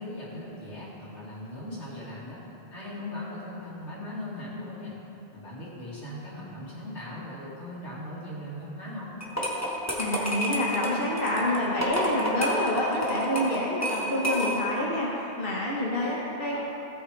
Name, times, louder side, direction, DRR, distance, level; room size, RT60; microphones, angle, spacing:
voice 1, 0.0-2.4 2.7-4.9 5.3-9.1, left 1 dB, 85° left, -8 dB, 3.0 m, -39 dB
sound 1, 9.2-14.8, equal, 15° left, 1.3 m, -30 dB
voice 2, 10.0-16.6, left 1 dB, 55° left, -6 dB, 1.5 m, -28 dB
15.5 x 8.2 x 3.3 m, 2.9 s
omnidirectional pair, 1.1 m